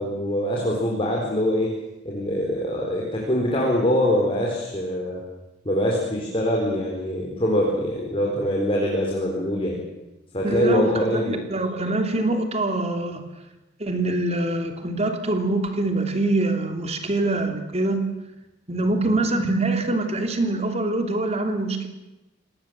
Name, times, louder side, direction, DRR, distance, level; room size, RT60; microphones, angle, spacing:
voice 1, 0.0-1.7 2.0-5.2 5.6-9.8 10.3-11.4, equal, 30° left, -2 dB, 4.2 m, -23 dB
voice 2, 10.4-13.2 13.8-18.0 18.7-21.9, right 2 dB, 30° right, 5 dB, 3.0 m, -24 dB
26.0 x 19.5 x 7.7 m, 0.99 s
head